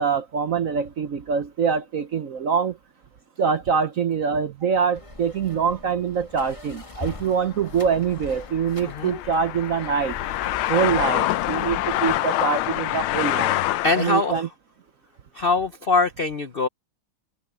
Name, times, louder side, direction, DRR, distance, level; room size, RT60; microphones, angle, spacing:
voice 1, 0.0-2.8 3.4-10.2 10.7-13.6 13.9-14.5, right 6 dB, 55° right, 0.9 m, -24 dB
sound 1, 4.9-12.1, left 2 dB, 15° left, 1.7 m, -42 dB
sound 2, 7.1-14.3, left 14 dB, 90° left, 1.5 m, -26 dB
voice 2, 8.8-9.2 13.8-14.4 15.3-16.7, left 3 dB, 65° left, 0.5 m, -23 dB
omnidirectional pair, 2.3 m